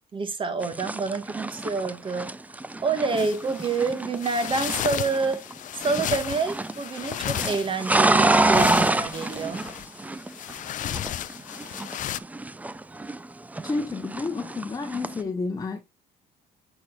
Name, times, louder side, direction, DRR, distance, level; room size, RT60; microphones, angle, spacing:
voice 1, 0.1-2.3 2.8-5.4 5.7-9.6, right 4 dB, 30° right, 1.6 m, -27 dB
sound 1, 0.6-5.5 5.8-6.8 7.1-10.5 10.8-13.3 13.5-15.2, right 2 dB, 10° right, 0.5 m, -26 dB
sound 2, 3.2-12.2, left 12 dB, 50° left, 0.4 m, -34 dB
voice 2, 13.6-15.8, left 3 dB, 20° left, 1.1 m, -30 dB
8.4 x 6.2 x 2.4 m
cardioid pair, 110°, 17 cm